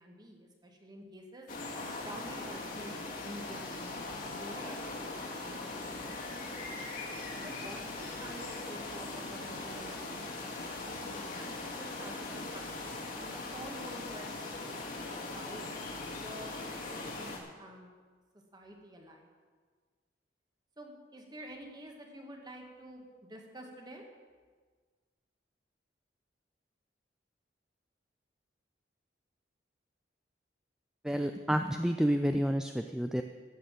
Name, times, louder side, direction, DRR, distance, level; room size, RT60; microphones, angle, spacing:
voice 1, 0.0-1.5 1.8-6.7 7.4-14.7 15.1-15.7 16.1-17.9 18.5-19.3 20.8-24.0, equal, 25° right, 1 dB, 1.7 m, -49 dB
sound 1, 1.5-17.4, left 2 dB, 55° left, 2.2 m, -40 dB
voice 2, 31.0-33.2, equal, 5° right, 6 dB, 0.4 m, -29 dB
13.5 x 6.8 x 7.5 m, 1.5 s
head